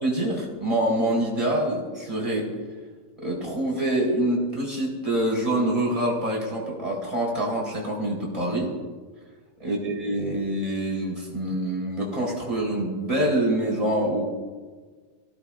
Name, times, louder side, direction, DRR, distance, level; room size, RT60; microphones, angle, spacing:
voice 1, 0.0-2.5 3.2-8.7 9.6-14.2, right 1 dB, 10° right, -3 dB, 3.9 m, -25 dB
25.0 x 17.0 x 2.5 m, 1.4 s
omnidirectional pair, 3.3 m